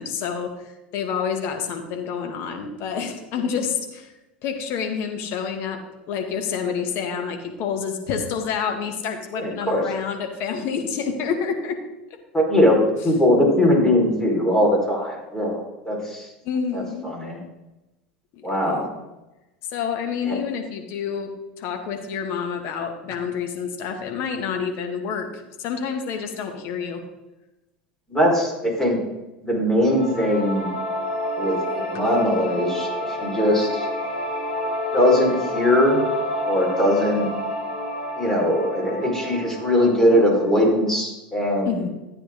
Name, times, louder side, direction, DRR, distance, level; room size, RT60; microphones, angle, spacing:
voice 1, 0.0-4.1 4.4-5.8 6.1-11.8 16.4-17.1 18.3-18.8 19.7-27.0 41.6-41.9, left 6 dB, 50° left, 4 dB, 2.1 m, -28 dB
voice 2, 9.4-9.9 12.3-16.3 16.7-17.4 18.4-18.9 20.3-20.4 28.1-29.0 29.4-30.7 31.4-33.9 34.9-36.0 36.5-37.3 38.2-41.9, left 1 dB, 10° left, -2 dB, 4.7 m, -21 dB
sound 1, 29.9-40.9, left 1 dB, 90° left, 4.0 m, -29 dB
13.5 x 9.1 x 3.8 m, 1.0 s
figure-of-eight pair, 80°, 5 cm